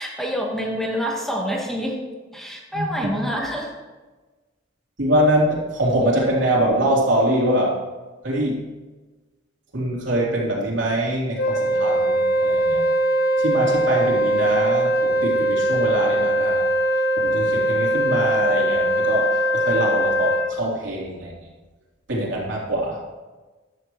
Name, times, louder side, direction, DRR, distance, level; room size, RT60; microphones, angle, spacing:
voice 1, 0.0-2.0 2.3-3.7, equal, ahead, -1 dB, 1.4 m, -27 dB
voice 2, 2.7-3.2 5.0-7.8 8.2-8.6 9.7-12.8 13.4-16.7 17.2-21.3 22.1-23.0, right 1 dB, 70° right, -3 dB, 3.5 m, -23 dB
Wind instrument woodwind instrument, 11.4-20.5, right 1 dB, 50° left, 1.0 m, -21 dB
14.5 x 11.5 x 3.2 m, 1.3 s
head